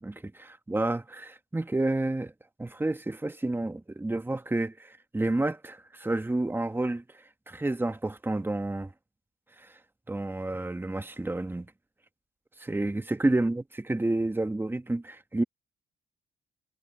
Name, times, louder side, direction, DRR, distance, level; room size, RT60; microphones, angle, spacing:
voice 1, 0.0-2.3 2.6-7.0 7.5-8.9 9.6-9.7 10.1-11.7 12.6-15.4, right 2 dB, 10° right, 1.3 m, -30 dB
cardioid pair, 90°, 20 cm